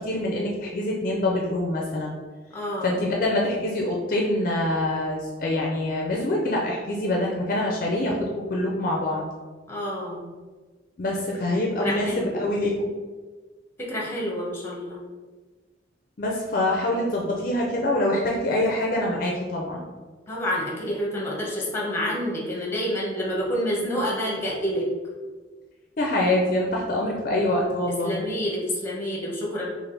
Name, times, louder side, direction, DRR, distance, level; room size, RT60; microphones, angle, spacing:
voice 1, 0.0-2.1 2.8-9.3 11.0-12.9 16.2-19.8 26.0-28.2, left 1 dB, 50° left, -1 dB, 0.5 m, -25 dB
voice 2, 2.5-3.0 9.7-10.3 11.8-12.3 13.8-15.0 20.3-24.9 28.0-29.7, equal, 15° left, -4 dB, 0.9 m, -28 dB
3.4 x 2.5 x 3.9 m, 1.4 s
head